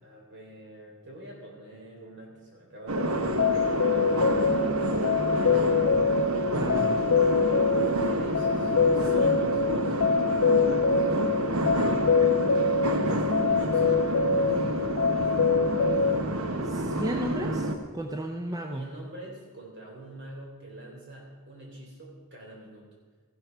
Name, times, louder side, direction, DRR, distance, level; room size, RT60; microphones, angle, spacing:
voice 1, 0.0-5.5 6.1-6.4 7.9-9.9 10.5-10.9 11.4-12.2 12.8-14.7 18.7-22.9, right 2 dB, 55° right, -1 dB, 3.6 m, -45 dB
sound 1, 2.9-17.8, right 1 dB, 70° right, 1.0 m, -29 dB
sound 2, 3.0-16.2, left 5 dB, 65° left, 0.4 m, -25 dB
voice 2, 6.5-7.0 16.6-18.9, equal, 15° right, 4 dB, 0.6 m, -34 dB
14.5 x 11.5 x 4.6 m, 1.5 s
head